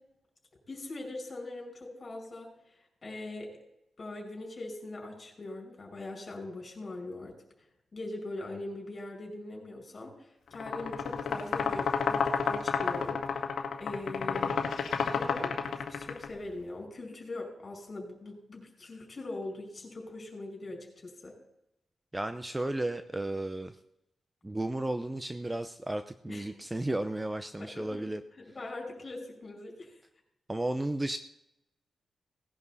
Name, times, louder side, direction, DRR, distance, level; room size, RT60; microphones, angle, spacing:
voice 1, 0.7-2.5 3.0-3.5 4.0-7.3 7.9-13.5 13.8-14.6 15.1-15.5 15.9-21.3 26.3-26.5 27.6-30.0, left 2 dB, 40° left, 1 dB, 5.4 m, -41 dB
sound 1, 10.5-16.3, left 6 dB, 80° left, 1.5 m, -30 dB
voice 2, 22.1-23.7 24.4-28.2 30.5-31.2, right 1 dB, 15° right, 10 dB, 0.7 m, -33 dB
18.5 x 11.0 x 4.1 m, 0.84 s
cardioid pair, 90°, 0 cm